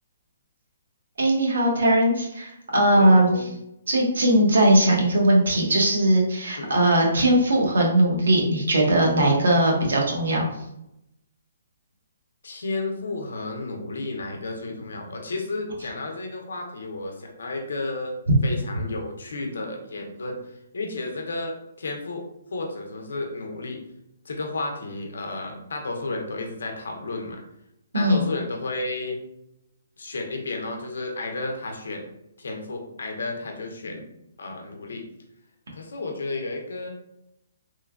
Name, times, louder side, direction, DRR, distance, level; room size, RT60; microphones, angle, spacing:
voice 1, 1.2-3.3 3.9-10.5 27.9-28.2, right 1 dB, 75° right, -1 dB, 0.8 m, -19 dB
voice 2, 2.9-3.5 6.6-6.7 12.4-18.2 18.4-22.2 22.5-23.8 24.2-27.4 27.9-29.2 30.0-32.1 32.4-34.1 34.4-35.0 35.7-36.9, left 2 dB, 80° left, 2 dB, 0.6 m, -32 dB
3.1 x 2.2 x 2.3 m, 0.82 s
hypercardioid pair, 175°, 0 cm